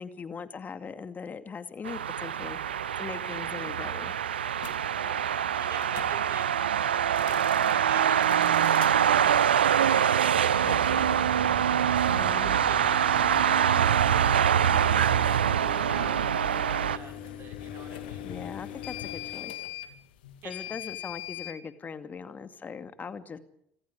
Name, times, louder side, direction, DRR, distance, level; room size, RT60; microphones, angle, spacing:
voice 1, 0.0-2.6 3.0-4.1 12.1-12.6 18.2-19.6 20.4-23.4, left 5 dB, 30° left, 10 dB, 2.4 m, -40 dB
sound 1, 1.8-17.0, right 9 dB, 75° right, 0.9 m, -24 dB
sound 2, 4.6-4.8 5.8-6.1 7.0-7.7 8.2-8.9 10.5-21.6, left 11 dB, 70° left, 2.6 m, -41 dB
voice 2, 5.0-6.7 12.4-16.2 16.5-18.3 20.4-20.5 20.8-20.9, right 7 dB, 45° right, 4 dB, 5.6 m, -45 dB
26.5 x 26.0 x 5.1 m, 0.73 s
figure-of-eight pair, 55°, 6 cm